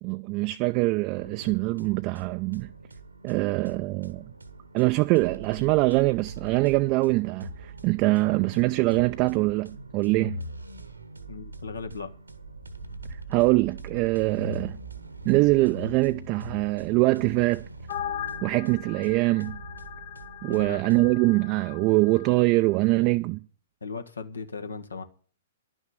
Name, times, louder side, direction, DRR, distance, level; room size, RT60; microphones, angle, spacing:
voice 1, 0.0-2.7 3.2-4.3 4.7-10.4 13.3-14.8 15.2-17.6 18.4-19.6 20.4-23.4, right 22 dB, 35° right, 0.5 m, -23 dB
sound 1, 1.2-21.1, right 2 dB, 85° right, 1.5 m, -42 dB
voice 2, 11.3-12.1 20.5-20.8 23.8-25.0, left 4 dB, 75° left, 1.5 m, -37 dB
sound 2, 17.9-22.4, left 11 dB, 50° left, 0.9 m, -39 dB
11.5 x 6.3 x 9.3 m
figure-of-eight pair, 110°, 0 cm